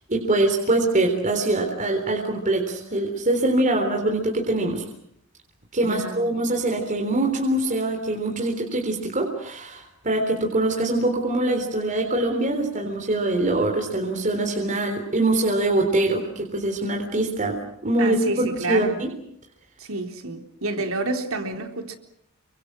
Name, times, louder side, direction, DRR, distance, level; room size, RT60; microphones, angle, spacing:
voice 1, 0.1-4.8 5.7-19.1, right 2 dB, 35° right, 3.7 m, -23 dB
voice 2, 5.8-6.3 18.0-19.0 19.8-21.9, right 2 dB, 65° right, 3.9 m, -29 dB
30.0 x 25.0 x 6.3 m
head